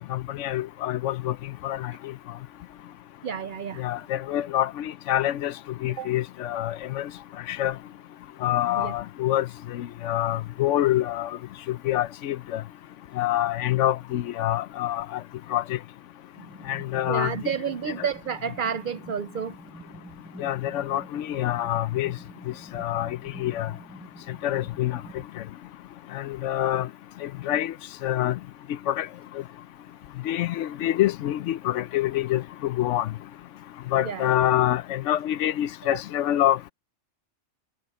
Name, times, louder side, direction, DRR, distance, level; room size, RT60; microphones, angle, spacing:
voice 1, 0.1-1.3 1.6-2.1 3.8-5.5 5.8-7.1 7.5-7.7 8.4-11.3 11.7-12.6 13.2-15.2 15.5-15.8 16.7-17.3 18.0-18.1 20.4-22.2 22.7-23.7 24.4-25.0 26.1-26.9 27.2-27.7 28.0-28.4 28.9-29.1 30.2-33.1 33.9-36.7, left 13 dB, 90° left, 0.9 m, -26 dB
voice 2, 3.2-3.8 6.0-6.1 8.7-8.9 17.1-19.6 34.0-34.3 35.9-36.0, right 7 dB, 60° right, 0.6 m, -30 dB
sound 1, 16.4-25.3, right 1 dB, 5° right, 1.7 m, -47 dB
omnidirectional pair, 1.2 m